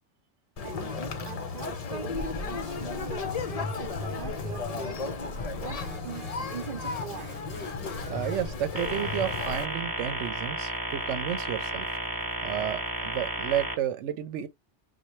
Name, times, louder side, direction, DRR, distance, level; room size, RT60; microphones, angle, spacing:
Conversation, 0.6-9.6, left 4 dB, 45° left, 0.5 m, -34 dB
voice 1, 1.2-7.3, right 6 dB, 50° right, 0.8 m, -42 dB
sound 1, 5.7-8.6, equal, 10° left, 0.7 m, -46 dB
voice 2, 8.1-11.9 12.4-14.5, right 10 dB, 85° right, 0.9 m, -31 dB
sound 2, 8.8-13.7, right 1 dB, 20° right, 0.8 m, -33 dB
4.1 x 2.2 x 3.0 m
omnidirectional pair, 1.2 m